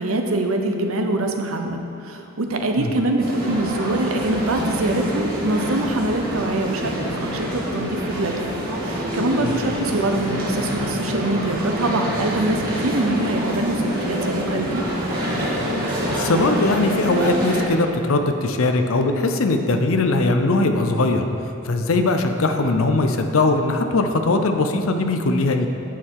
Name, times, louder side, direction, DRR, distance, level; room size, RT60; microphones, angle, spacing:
voice 1, 0.0-14.8, right 2 dB, 80° right, 4 dB, 0.8 m, -24 dB
sound 1, 3.2-17.7, equal, 45° right, 1.9 m, -26 dB
voice 2, 16.1-21.2 21.6-25.7, left 2 dB, 75° left, 6 dB, 0.6 m, -20 dB
9.1 x 6.5 x 4.7 m, 2.8 s
head